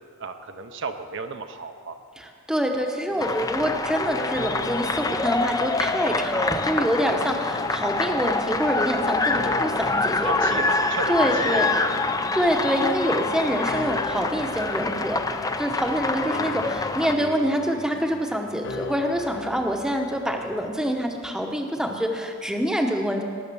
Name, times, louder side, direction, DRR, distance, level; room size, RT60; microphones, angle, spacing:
voice 1, 0.2-2.0 10.2-12.5, right 4 dB, 55° right, 7 dB, 0.7 m, -34 dB
voice 2, 2.2-10.7 11.1-11.7 12.3-23.2, equal, 5° right, 3 dB, 0.8 m, -26 dB
sound 1, 3.1-21.0, left 4 dB, 55° left, 0.7 m, -39 dB
sound 2, 3.2-17.2, left 3 dB, 15° left, 0.4 m, -26 dB
18.5 x 6.6 x 6.8 m, 2.2 s
head